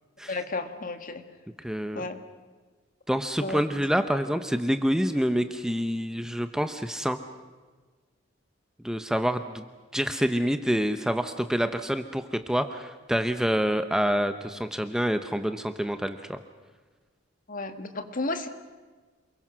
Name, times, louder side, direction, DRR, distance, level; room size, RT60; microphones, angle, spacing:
voice 1, 0.3-1.2 1.9-2.2 3.4-3.6 17.5-18.5, left 3 dB, 45° left, 8 dB, 1.8 m, -32 dB
voice 2, 1.6-2.0 3.1-7.2 8.8-9.6 9.9-16.4, equal, 5° right, 8 dB, 0.8 m, -27 dB
28.0 x 22.0 x 6.2 m, 1.4 s
head